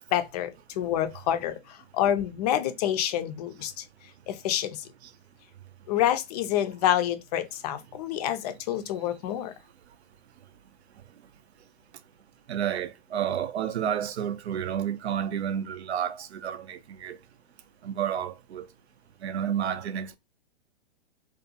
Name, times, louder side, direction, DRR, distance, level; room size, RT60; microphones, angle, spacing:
voice 1, 0.1-3.9 4.3-4.9 5.9-9.5, left 11 dB, 40° left, 0.4 m, -28 dB
voice 2, 12.5-17.2 17.8-18.7 19.2-20.2, right 9 dB, 85° right, 0.5 m, -30 dB
2.5 x 2.2 x 2.7 m
hypercardioid pair, 130°, 32 cm